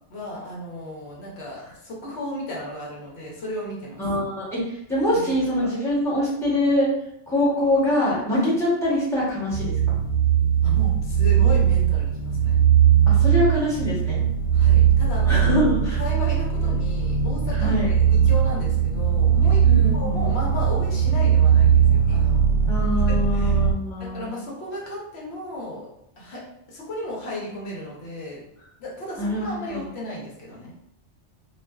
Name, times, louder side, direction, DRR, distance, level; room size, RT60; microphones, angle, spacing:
voice 1, 0.1-4.0 5.1-5.7 8.4-8.5 10.6-12.6 14.5-15.5 16.0-19.6 19.9-22.4 23.3-23.7 24.0-25.8 26.2-26.4 26.7-28.4 28.8-30.7, left 1 dB, 65° left, -4 dB, 1.0 m, -34 dB
voice 2, 4.0-6.9 7.3-10.0 13.1-14.2 15.3-16.0 17.5-17.9 19.6-20.4 22.7-24.3 29.2-29.8, left 1 dB, 5° left, -8 dB, 0.7 m, -24 dB
sound 1, 9.5-23.7, right 8 dB, 60° right, 0.8 m, -19 dB
2.4 x 2.3 x 2.2 m, 0.78 s
omnidirectional pair, 1.2 m